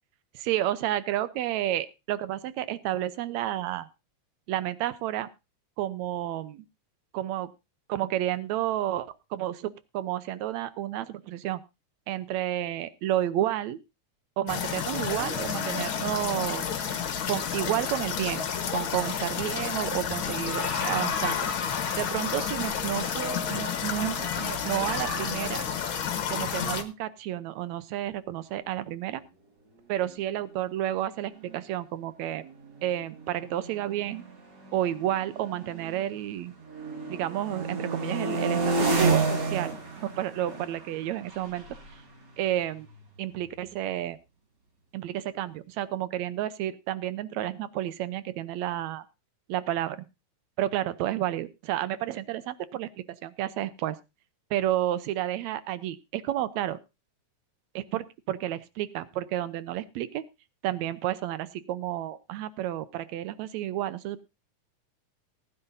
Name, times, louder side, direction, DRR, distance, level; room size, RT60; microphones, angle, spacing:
voice 1, 0.4-3.9 4.5-5.3 5.8-6.7 7.1-7.5 7.9-11.6 12.1-13.8 14.4-16.8 17.3-18.5 18.7-21.4 22.0-25.7 26.3-29.2 29.9-32.5 32.8-34.2 34.7-36.5 37.1-39.8 40.0-41.7 42.4-42.9 43.2-44.2 44.9-49.0 49.5-50.1 50.6-52.9 53.2-54.0 54.5-56.8 57.8-60.2 60.6-64.2, right 13 dB, 80° right, 14 dB, 2.0 m, -31 dB
sound 1, 14.5-26.8, left 7 dB, 50° left, 1.8 m, -30 dB
sound 2, 30.9-31.0 31.2-31.6 32.3-36.2 36.6-43.2, right 3 dB, 40° right, 2.6 m, -31 dB
19.0 x 9.9 x 2.6 m, 0.26 s
omnidirectional pair, 3.3 m